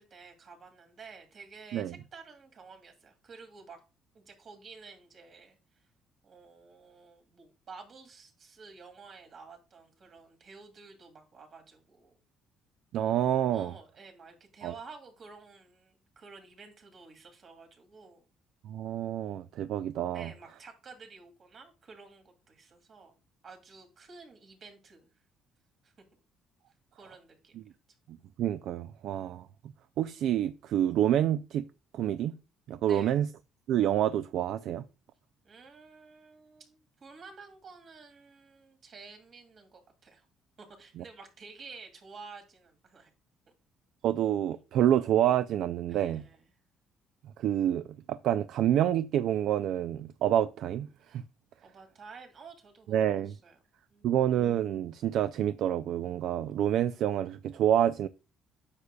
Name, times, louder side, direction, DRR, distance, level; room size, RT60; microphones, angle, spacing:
voice 1, 0.0-3.8 4.1-5.9 6.2-12.2 13.5-18.2 20.1-23.2 23.4-25.1 25.8-25.9 27.0-27.6 32.8-33.2 35.4-40.3 40.6-43.1 45.9-46.5 51.6-53.6 53.9-54.2, right 4 dB, 50° right, 2.5 m, -51 dB
voice 2, 12.9-13.7 14.6-14.7 18.6-20.3 28.4-29.5 30.0-31.6 31.9-32.3 32.7-33.3 33.7-34.8 44.0-46.2 47.4-51.2 52.9-53.3 54.0-58.1, right 11 dB, 70° right, 0.3 m, -28 dB
9.6 x 6.7 x 2.3 m
cardioid pair, 100°, 0 cm